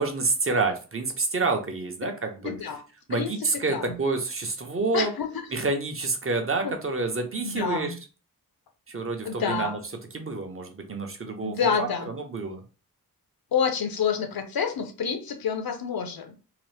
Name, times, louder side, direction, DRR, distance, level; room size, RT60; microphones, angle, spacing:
voice 1, 0.0-2.5 3.1-5.1 5.5-7.9 8.9-9.8 10.1-11.9 12.1-12.6, right 3 dB, 35° right, 0.8 m, -28 dB
voice 2, 2.4-2.8 3.1-4.0 4.9-5.5 6.6-6.7 7.3-8.0 9.2-9.8 11.4-12.1 13.5-16.3, left 6 dB, 65° left, 0.7 m, -28 dB
2.9 x 2.0 x 3.2 m
cardioid pair, 55°, 38 cm